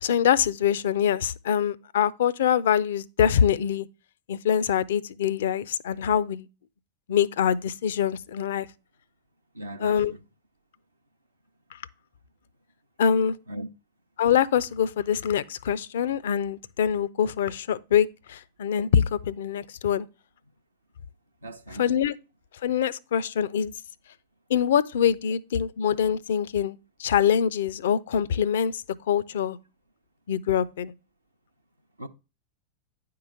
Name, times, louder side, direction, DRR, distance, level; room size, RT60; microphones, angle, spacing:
voice 1, 0.0-3.9 4.3-6.5 7.1-8.7 9.8-10.1 13.0-13.4 14.2-20.1 21.8-22.1 22.6-23.7 24.5-29.6 30.3-30.9, left 8 dB, 60° left, 0.4 m, -24 dB
voice 2, 9.5-10.2 13.5-13.7 21.4-21.9 32.0-32.1, right 1 dB, 85° right, 0.6 m, -38 dB
9.8 x 3.8 x 5.5 m
figure-of-eight pair, 90°, 0 cm